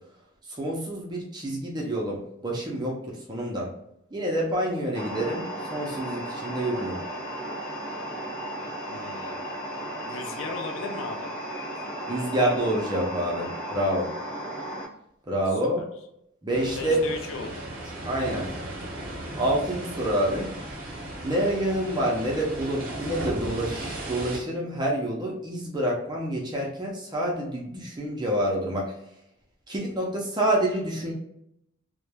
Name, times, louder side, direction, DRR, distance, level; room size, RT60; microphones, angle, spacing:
voice 1, 0.5-3.7 4.1-5.4 5.7-7.0 12.1-14.1 15.3-15.8 16.4-17.0 18.1-18.5 19.3-20.5 21.2-28.9 29.7-31.1, right 1 dB, 20° right, -2 dB, 0.4 m, -27 dB
sound 1, 4.9-14.8, right 1 dB, 35° left, 0.9 m, -35 dB
voice 2, 8.9-9.4 10.0-11.3 15.5-15.6 16.8-17.6, left 4 dB, 65° left, 4 dB, 0.3 m, -36 dB
sound 2, 16.5-24.4, right 1 dB, 45° right, 0.8 m, -36 dB
3.0 x 2.0 x 2.2 m, 0.78 s
head